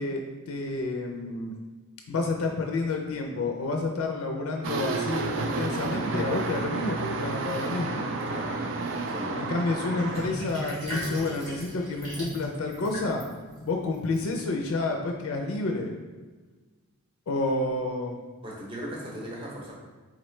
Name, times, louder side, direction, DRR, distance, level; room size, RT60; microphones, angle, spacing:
voice 1, 0.0-1.5 2.1-8.1 9.4-13.2 13.6-15.9 17.3-18.2, left 3 dB, 70° left, 2 dB, 0.4 m, -29 dB
sound 1, 4.6-10.3, right 3 dB, 55° right, 0.3 m, -31 dB
voice 2, 8.3-8.6 9.1-9.4 18.4-19.7, equal, 20° right, -3 dB, 0.7 m, -38 dB
Sink (filling or washing), 10.0-14.7, equal, 90° right, 1.4 m, -38 dB
3.9 x 3.0 x 3.1 m, 1.3 s
head